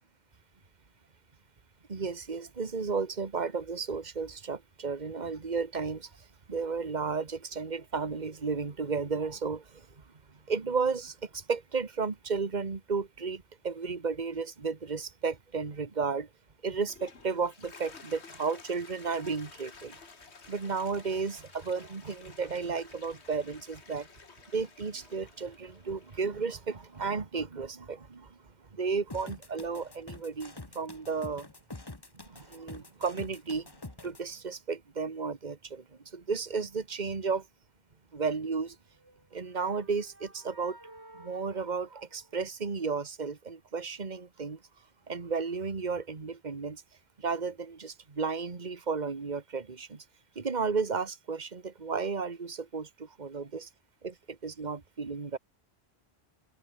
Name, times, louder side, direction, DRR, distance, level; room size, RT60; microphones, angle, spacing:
voice 1, 1.9-16.3 16.6-20.0 20.5-24.1 24.5-28.4 28.7-31.5 32.1-33.7 34.0-37.5 38.1-38.8 39.3-40.8 41.1-44.6 45.1-46.8 47.2-50.0 50.3-53.7 54.0-55.4, right 5 dB, 45° right, 1.7 m, -33 dB
Toilet flush, 16.7-27.0, left 5 dB, 90° left, 2.1 m, -53 dB
sound 1, 29.1-34.2, left 2 dB, 20° left, 1.5 m, -46 dB
sound 2, 38.9-42.8, right 1 dB, 85° right, 7.8 m, -54 dB
omnidirectional pair, 1.1 m